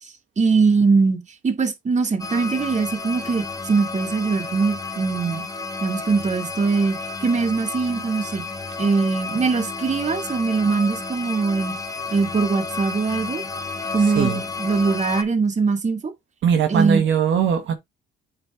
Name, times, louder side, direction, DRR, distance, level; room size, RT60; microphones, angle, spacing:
voice 1, 0.0-1.2 1.4-5.4 5.8-8.4 8.8-11.7 12.1-13.4 13.9-16.1 16.7-17.0, right 4 dB, 35° right, 2.1 m, -22 dB
sound 1, 2.2-15.2, left 4 dB, 15° left, 1.3 m, -32 dB
voice 2, 16.4-17.7, right 7 dB, 70° right, 1.4 m, -20 dB
8.7 x 3.5 x 4.7 m
cardioid pair, 90°, 20 cm